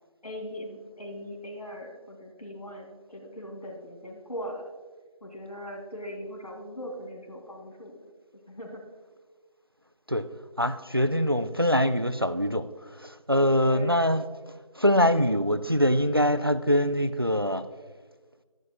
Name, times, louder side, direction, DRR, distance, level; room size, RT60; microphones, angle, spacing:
voice 1, 0.2-4.7 5.2-8.0 8.5-8.8 13.6-14.0, equal, 85° left, 2 dB, 2.7 m, -40 dB
voice 2, 10.6-12.7 13.0-14.2 14.8-17.6, equal, 40° right, 13 dB, 0.4 m, -23 dB
11.5 x 11.0 x 2.3 m, 1.4 s
figure-of-eight pair, 175°, 19 cm